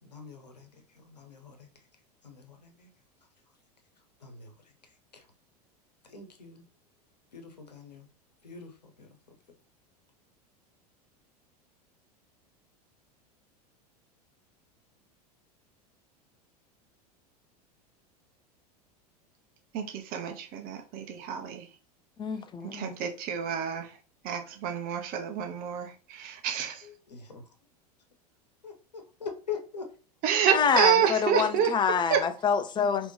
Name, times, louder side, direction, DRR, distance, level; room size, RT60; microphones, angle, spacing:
voice 1, 0.0-1.9 2.2-2.9 4.2-5.3 6.0-6.6 7.3-8.1 8.4-9.2 26.8-27.5 28.6-30.0, left 6 dB, 85° left, 1.1 m, -43 dB
voice 2, 19.7-21.7 22.6-24.0 24.2-26.9 30.2-31.7 32.1-32.3, right 7 dB, 45° right, 1.0 m, -28 dB
voice 3, 22.2-22.9 30.5-33.1, left 6 dB, 20° left, 0.6 m, -27 dB
5.1 x 3.1 x 3.3 m
hypercardioid pair, 85°, 21 cm